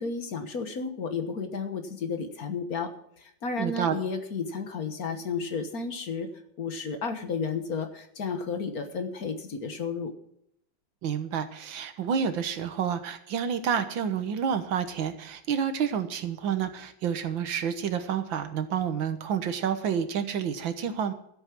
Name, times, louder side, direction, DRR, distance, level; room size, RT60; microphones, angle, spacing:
voice 1, 0.0-2.9 3.2-6.3 6.6-10.1, left 5 dB, 50° left, 7 dB, 1.7 m, -32 dB
voice 2, 3.6-4.0 11.0-21.1, right 7 dB, 80° right, 9 dB, 1.9 m, -29 dB
13.0 x 8.7 x 6.0 m, 0.74 s
omnidirectional pair, 2.1 m